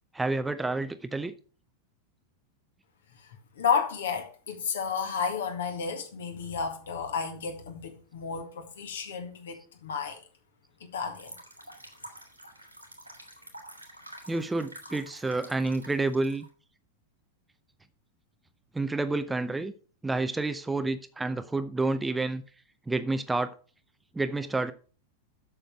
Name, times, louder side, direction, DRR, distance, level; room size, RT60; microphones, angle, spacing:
voice 1, 0.1-1.3 14.3-16.4 18.7-19.7 20.0-22.4 22.9-23.5 24.1-24.7, right 2 dB, 10° right, 0.5 m, -29 dB
voice 2, 3.6-10.2 10.9-11.4, left 6 dB, 65° left, 1.9 m, -32 dB
sound 1, 11.1-16.5, right 1 dB, 85° right, 2.0 m, -48 dB
7.7 x 6.6 x 5.7 m
figure-of-eight pair, 90°, 0 cm